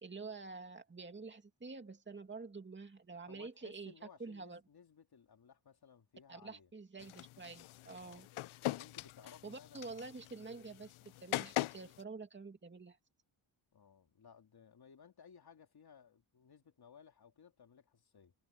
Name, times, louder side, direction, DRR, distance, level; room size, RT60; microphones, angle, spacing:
voice 1, 0.0-3.9 4.2-4.6 6.3-8.3 9.4-10.9 11.2-13.0, right 4 dB, 25° right, 2.5 m, -48 dB
voice 2, 3.3-6.7 8.0-8.3 8.7-9.8 13.7-18.3, left 7 dB, 50° left, 3.1 m, -60 dB
sound 1, 7.0-12.0, left 16 dB, 85° left, 0.6 m, -42 dB
cardioid pair, 105°, 48 cm